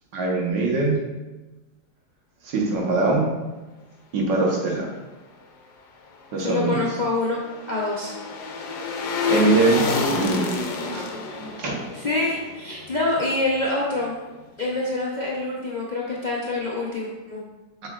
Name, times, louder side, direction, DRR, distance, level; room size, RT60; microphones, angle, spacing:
voice 1, 0.1-1.0 2.4-3.3 4.1-4.9 6.3-6.8 9.3-10.5 10.9-11.1 11.6-11.8, right 3 dB, 80° right, -1 dB, 1.9 m, -22 dB
sound 1, 6.4-13.7 14.0-14.1, left 4 dB, 70° left, 1.3 m, -29 dB
voice 2, 6.4-7.4 7.7-8.1 11.9-14.2 14.6-17.4, left 2 dB, 40° left, -5 dB, 0.6 m, -26 dB
7.2 x 6.7 x 2.5 m, 1.1 s
omnidirectional pair, 1.9 m